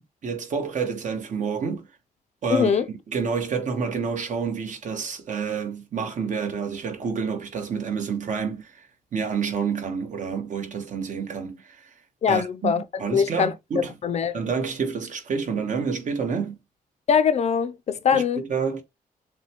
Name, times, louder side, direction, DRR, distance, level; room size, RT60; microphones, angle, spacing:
voice 1, 0.2-1.9 2.4-2.8 3.1-11.9 12.3-13.9 14.3-16.6 18.1-18.8, right 5 dB, 55° right, 1.2 m, -29 dB
voice 2, 2.5-2.9 12.2-12.8 13.1-13.5 14.0-14.4 17.1-18.4, left 7 dB, 45° left, 0.4 m, -22 dB
6.6 x 2.2 x 2.9 m
wide cardioid pair, 160°, 15 cm